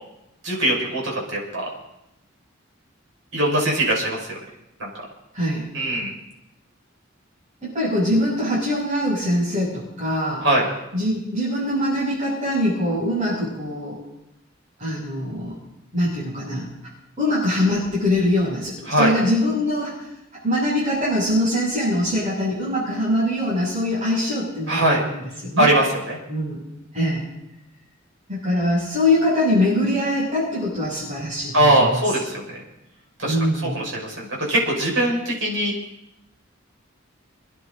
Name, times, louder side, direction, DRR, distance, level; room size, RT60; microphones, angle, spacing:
voice 1, 0.4-1.6 3.3-4.2 4.8-4.9 5.7-6.1 10.4-10.7 18.9-19.1 24.7-25.0 25.6-26.2 31.5-32.6 33.2-33.3 33.7-35.7, right 1 dB, 80° right, -3 dB, 6.0 m, -21 dB
voice 2, 5.3-5.7 7.6-10.4 10.9-14.0 14.8-15.6 15.9-16.7 17.2-20.1 20.4-25.7 26.3-26.6 26.9-27.2 28.3-32.1 33.2-33.8, left 1 dB, 35° right, -9 dB, 7.7 m, -23 dB
28.0 x 10.5 x 4.0 m, 0.86 s
head